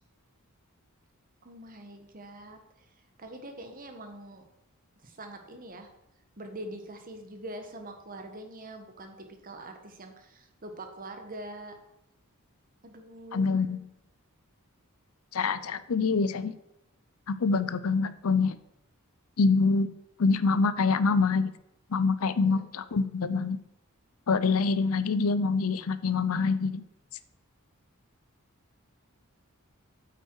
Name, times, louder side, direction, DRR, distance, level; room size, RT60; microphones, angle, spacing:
voice 1, 1.4-2.9 3.2-4.4 5.0-5.9 6.4-11.7 12.8-13.6 22.4-22.7, right 1 dB, 40° right, 5 dB, 1.4 m, -44 dB
voice 2, 13.3-13.8 15.3-16.5 17.3-18.5 19.4-19.9 20.2-21.5 21.9-23.6 24.3-26.8, left 4 dB, 75° left, 14 dB, 0.6 m, -25 dB
8.8 x 8.0 x 4.8 m, 0.83 s
head